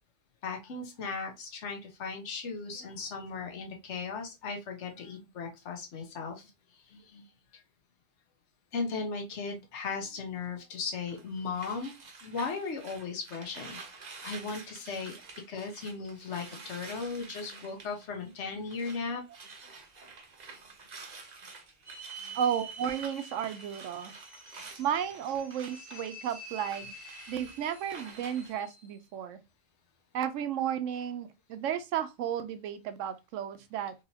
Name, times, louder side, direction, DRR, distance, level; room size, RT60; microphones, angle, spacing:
voice 1, 0.4-6.5 6.9-7.2 8.7-11.9 12.2-13.8 14.2-15.1 15.5-19.2 22.2-22.4, left 4 dB, 70° left, 1.2 m, -37 dB
sound 1, 11.1-19.0 19.3-28.5, right 4 dB, 40° right, 0.7 m, -49 dB
sound 2, 21.8-29.0, right 2 dB, 40° left, 1.7 m, -48 dB
voice 2, 22.3-24.1 24.8-26.9 27.3-29.4 30.1-33.9, right 9 dB, 85° right, 1.0 m, -33 dB
4.0 x 3.1 x 2.8 m
omnidirectional pair, 1.3 m